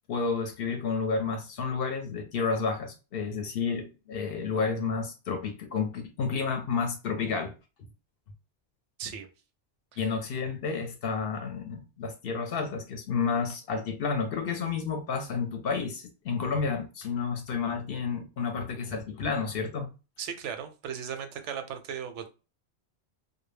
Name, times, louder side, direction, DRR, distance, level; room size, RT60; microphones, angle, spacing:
voice 1, 0.1-7.5 10.0-19.9, left 5 dB, 65° left, 0.7 m, -31 dB
voice 2, 20.2-22.3, right 8 dB, 85° right, 0.9 m, -37 dB
2.2 x 2.0 x 3.2 m
omnidirectional pair, 1.2 m